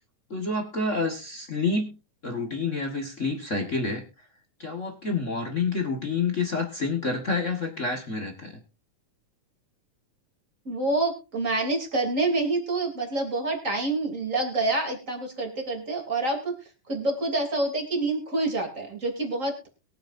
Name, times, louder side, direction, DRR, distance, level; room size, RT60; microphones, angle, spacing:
voice 1, 0.3-2.0 2.2-4.3 4.6-8.6, left 3 dB, 35° left, 3 dB, 1.4 m, -28 dB
voice 2, 10.6-16.5 16.9-19.7, right 2 dB, 25° right, 2 dB, 3.3 m, -27 dB
22.5 x 8.2 x 2.6 m, 0.30 s
omnidirectional pair, 3.5 m